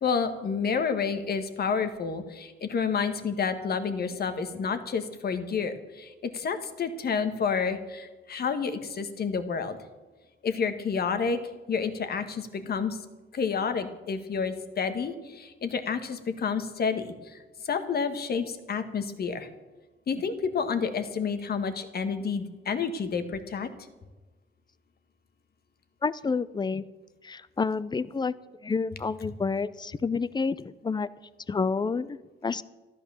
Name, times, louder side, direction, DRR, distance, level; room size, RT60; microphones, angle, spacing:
voice 1, 0.0-9.8 10.4-11.4 11.7-13.0 13.3-17.4 17.6-19.5 20.1-23.7, left 5 dB, 50° left, 8 dB, 1.6 m, -29 dB
voice 2, 26.0-26.8 27.2-28.3 28.6-31.1 31.5-32.6, left 4 dB, 20° left, 17 dB, 0.6 m, -29 dB
13.5 x 12.0 x 7.0 m, 1.2 s
cardioid pair, 90°, 20 cm